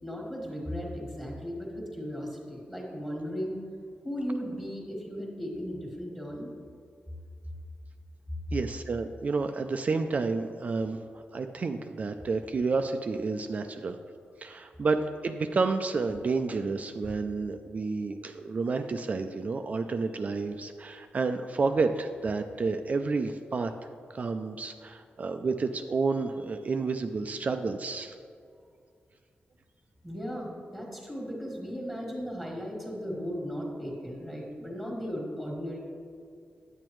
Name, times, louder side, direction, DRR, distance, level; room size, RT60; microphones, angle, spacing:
voice 1, 0.0-3.6 4.0-6.5 30.0-35.8, equal, 5° left, -2 dB, 1.5 m, -36 dB
voice 2, 8.5-11.0 11.3-14.0 14.4-23.7 24.1-28.2, right 4 dB, 40° right, 7 dB, 0.3 m, -30 dB
8.7 x 8.7 x 3.1 m, 2.3 s
wide cardioid pair, 150°, 4 cm